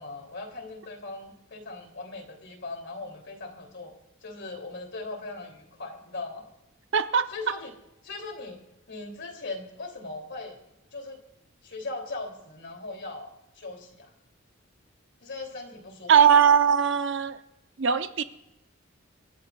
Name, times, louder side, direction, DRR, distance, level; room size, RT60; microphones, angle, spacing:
voice 1, 0.0-3.9 4.2-6.5 7.3-7.7 8.0-8.6 8.9-10.6 10.9-11.2 11.6-13.3 13.5-14.1 15.2-16.1, left 3 dB, 60° left, 3 dB, 3.1 m, -39 dB
voice 2, 6.9-7.3 16.1-17.4 17.8-18.2, right 7 dB, 65° right, 9 dB, 0.8 m, -20 dB
26.0 x 13.5 x 2.4 m, 0.89 s
head